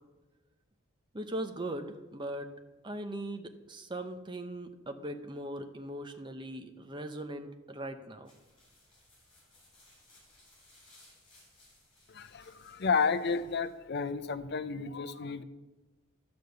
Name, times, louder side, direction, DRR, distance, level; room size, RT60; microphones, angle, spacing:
voice 1, 1.1-2.5 2.8-8.3, right 1 dB, 20° right, 0.7 m, -39 dB
sound 1, 8.2-13.8, left 1 dB, 25° left, 3.9 m, -62 dB
voice 2, 12.1-15.4, left 5 dB, 50° left, 0.6 m, -32 dB
11.5 x 5.2 x 7.8 m
head